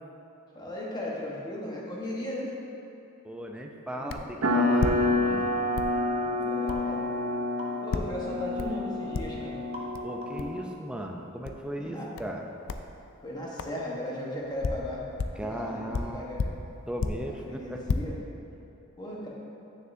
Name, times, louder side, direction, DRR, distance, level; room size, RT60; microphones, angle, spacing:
voice 1, 0.5-2.6 4.0-4.2 6.3-7.0 7.8-9.6 11.8-12.1 13.2-15.1 15.3-16.5 17.4-18.2 19.0-19.3, left 1 dB, 20° left, -4 dB, 1.1 m, -36 dB
voice 2, 3.2-5.4 10.0-12.5 15.4-16.2 16.9-17.9, equal, 5° right, 1 dB, 0.4 m, -37 dB
sound 1, 4.1-4.3 4.7-5.5 5.7-6.0 6.7-6.9 7.9-8.2 8.6-8.8 9.1-9.5 9.9-10.0 10.4-10.6 11.4-11.6 12.2-12.4 12.7-12.9 13.6-13.8 14.4-15.5 15.9-17.3 17.7-18.0, left 4 dB, 80° left, 0.4 m, -32 dB
sound 2, 4.4-10.6, left 1 dB, 85° right, 0.6 m, -28 dB
sound 3, 6.7-6.9 7.6-7.8 9.7-10.0 10.2-10.5, left 1 dB, 30° right, 0.8 m, -42 dB
9.2 x 6.5 x 2.6 m, 2.9 s
head